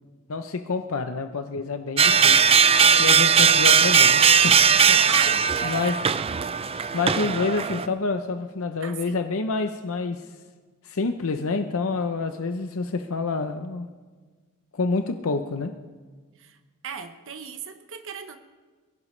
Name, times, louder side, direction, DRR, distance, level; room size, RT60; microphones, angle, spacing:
voice 1, 0.3-2.5 3.0-4.6 4.8-5.0 5.6-5.9 6.9-10.3 10.8-13.9 14.7-15.7, left 4 dB, 65° left, 7 dB, 0.7 m, -27 dB
sound 1, 2.0-7.9, right 6 dB, 25° right, 0.4 m, -18 dB
voice 2, 5.1-6.0 8.8-9.2 16.4-16.6 16.8-18.4, right 5 dB, 60° right, 6 dB, 1.0 m, -36 dB
22.5 x 16.0 x 3.3 m, 1.4 s
head